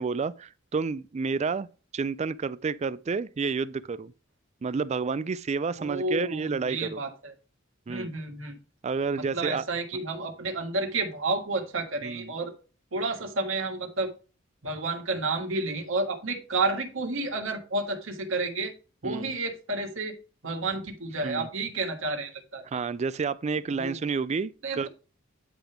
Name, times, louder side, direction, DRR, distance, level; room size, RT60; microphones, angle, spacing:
voice 1, 0.0-1.7 1.9-4.1 4.6-7.0 7.9-8.1 8.8-9.6 12.0-12.3 19.0-19.3 21.2-21.5 22.7-24.9, right 5 dB, 35° right, 0.4 m, -30 dB
voice 2, 5.8-7.3 7.9-8.6 9.2-12.5 12.9-14.1 14.6-18.7 19.0-20.1 20.4-22.7 23.7-24.1 24.6-24.9, right 3 dB, 70° right, 1.7 m, -31 dB
10.0 x 3.4 x 5.8 m
head